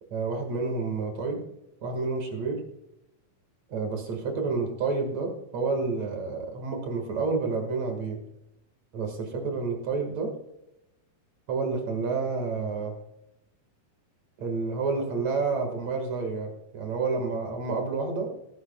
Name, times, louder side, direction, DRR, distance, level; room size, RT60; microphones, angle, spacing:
voice 1, 0.1-1.4 1.8-2.6 3.7-8.2 8.9-10.3 11.5-12.9 14.4-18.3, right 4 dB, 50° right, 4 dB, 2.6 m, -29 dB
18.5 x 9.5 x 2.3 m, 0.85 s
omnidirectional pair, 4.5 m